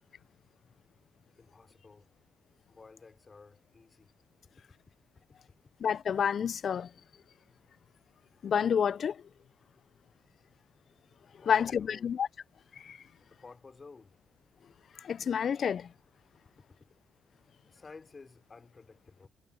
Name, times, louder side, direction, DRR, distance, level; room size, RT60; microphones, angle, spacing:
voice 1, 1.4-2.1 2.7-4.1 11.3-12.1 13.2-14.2 17.7-19.3, left 4 dB, 30° left, 3.5 m, -53 dB
voice 2, 5.8-6.9 8.4-9.2 11.5-12.3 12.8-13.0 15.0-15.9, left 7 dB, 55° left, 0.4 m, -29 dB
cardioid pair, 90°, 0 cm